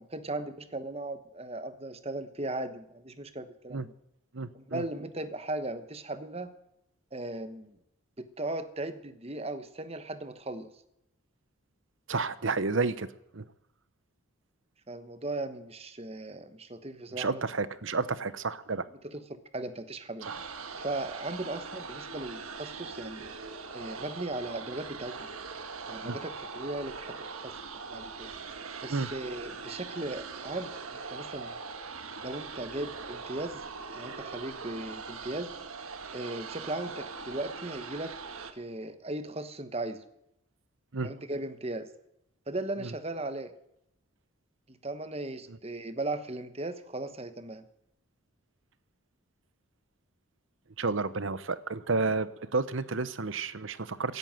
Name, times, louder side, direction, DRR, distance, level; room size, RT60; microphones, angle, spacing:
voice 1, 0.0-3.9 4.5-6.5 7.1-7.8 8.2-10.7 14.9-17.4 19.0-19.2 19.5-20.3 20.8-23.3 23.7-25.3 25.9-27.5 27.9-28.3 28.8-31.6 32.2-33.6 33.9-35.5 36.1-38.2 38.5-40.0 41.0-41.9 42.5-43.5 44.7-47.6, right 2 dB, 30° right, 11 dB, 1.1 m, -37 dB
voice 2, 4.3-4.8 12.1-13.1 13.3-13.5 17.2-18.9 20.3-20.4 26.0-26.2 28.9-29.1 40.9-41.1 42.8-42.9 50.8-54.2, right 3 dB, 65° right, 15 dB, 0.9 m, -31 dB
sound 1, 20.2-38.5, right 4 dB, 85° right, 1.5 m, -41 dB
16.5 x 11.0 x 7.7 m, 0.80 s
head